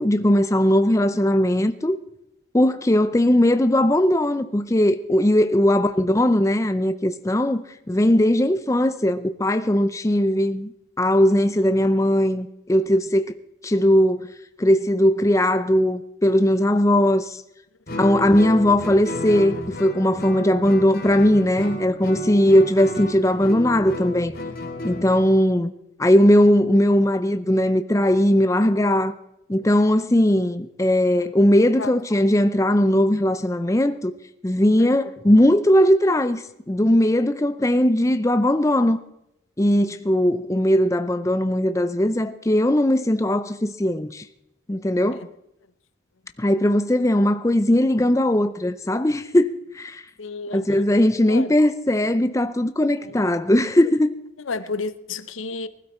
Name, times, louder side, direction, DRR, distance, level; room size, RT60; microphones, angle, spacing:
voice 1, 0.0-2.0 2.5-10.7 11.0-13.3 13.6-14.3 14.6-17.4 18.0-24.3 24.8-25.7 26.0-29.1 29.5-34.1 34.4-39.0 39.6-44.2 44.7-45.2 46.4-50.0 50.5-54.1, left 1 dB, 15° left, 0.5 m, -19 dB
Guitar, 17.9-25.3, left 1 dB, 50° left, 3.0 m, -32 dB
voice 2, 50.2-50.9 51.3-51.5 53.0-53.2 54.5-55.7, left 4 dB, 85° left, 0.8 m, -31 dB
20.0 x 12.5 x 4.3 m
head